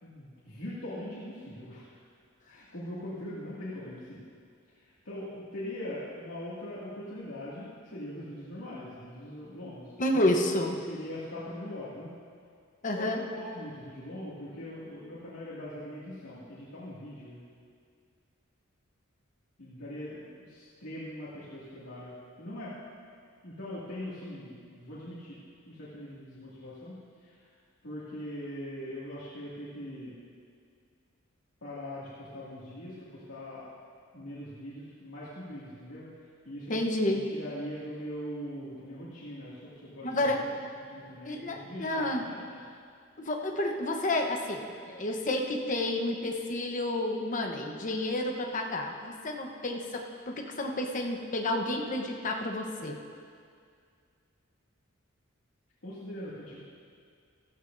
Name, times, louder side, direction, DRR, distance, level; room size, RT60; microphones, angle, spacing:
voice 1, 0.0-1.8 2.5-4.2 5.0-9.9 10.6-12.1 12.9-17.4 19.6-22.7 23.4-25.4 25.7-27.0 27.8-30.1 31.6-33.6 34.1-36.1 36.4-40.2 40.5-40.6 40.9-42.3 55.8-56.6, left 1 dB, 80° left, -10 dB, 2.3 m, -41 dB
voice 2, 10.0-10.8 12.8-13.2 36.7-37.2 40.0-40.4 41.2-42.3 43.2-53.0, left 1 dB, 40° left, 2 dB, 1.0 m, -30 dB
14.5 x 14.0 x 2.7 m, 2.2 s
head